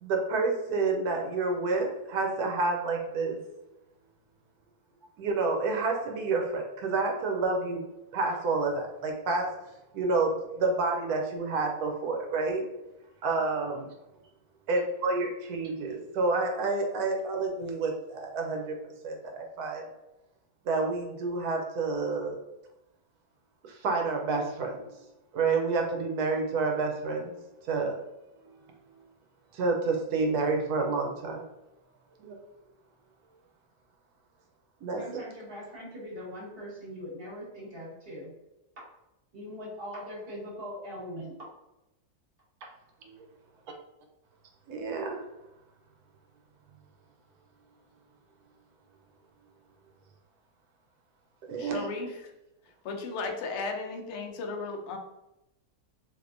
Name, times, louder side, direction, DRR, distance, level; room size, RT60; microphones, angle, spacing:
voice 1, 0.0-3.4 5.2-7.8 8.1-9.5 9.9-12.6 13.2-13.9 14.7-18.7 19.0-19.8 20.7-22.4 23.7-24.8 25.3-27.4 27.7-28.0 28.4-28.5 29.5-31.4 32.2-32.4 34.8-35.2 43.0-43.1 44.7-45.2 51.5-51.9, right 3 dB, 80° right, 2 dB, 1.1 m, -29 dB
voice 2, 34.9-38.3 38.8-38.9 39.3-41.5, equal, 40° right, -5 dB, 1.1 m, -41 dB
voice 3, 51.6-52.3 52.8-55.0, left 3 dB, 65° left, 3 dB, 0.7 m, -35 dB
3.4 x 2.8 x 2.5 m, 0.93 s
omnidirectional pair, 1.6 m